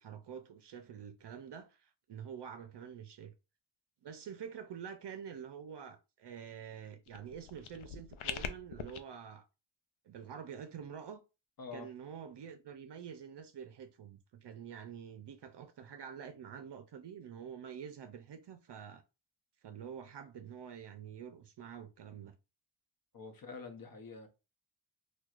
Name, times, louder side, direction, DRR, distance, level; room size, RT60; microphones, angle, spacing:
voice 1, 0.0-3.3 4.0-9.5 10.0-11.2 11.7-19.0 19.6-22.3, right 8 dB, 55° right, 0.5 m, -47 dB
sound 1, 7.1-9.0, left 8 dB, 75° left, 0.6 m, -42 dB
voice 2, 11.6-11.9 23.1-24.3, left 4 dB, 45° left, 0.8 m, -46 dB
4.3 x 2.3 x 2.4 m
wide cardioid pair, 100°, 49 cm